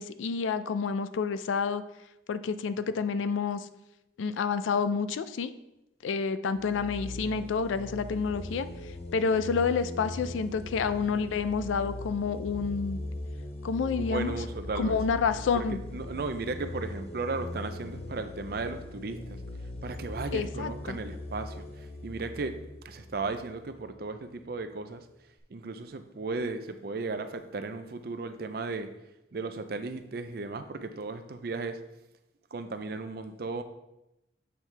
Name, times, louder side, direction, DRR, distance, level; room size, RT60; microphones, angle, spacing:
voice 1, 0.0-1.8 2.3-3.7 4.2-5.5 6.0-8.7 9.1-13.0 13.6-14.3 14.8-15.8 20.3-21.0, left 5 dB, 85° left, 13 dB, 0.4 m, -29 dB
sound 1, 6.5-24.0, left 1 dB, 30° left, 0.6 m, -40 dB
voice 2, 14.0-15.0 15.5-15.7 15.9-19.4 19.8-22.6 22.8-25.1 25.5-28.9 29.3-31.8 32.5-33.6, right 3 dB, 50° right, 9 dB, 0.4 m, -35 dB
7.3 x 4.6 x 3.3 m, 0.91 s
head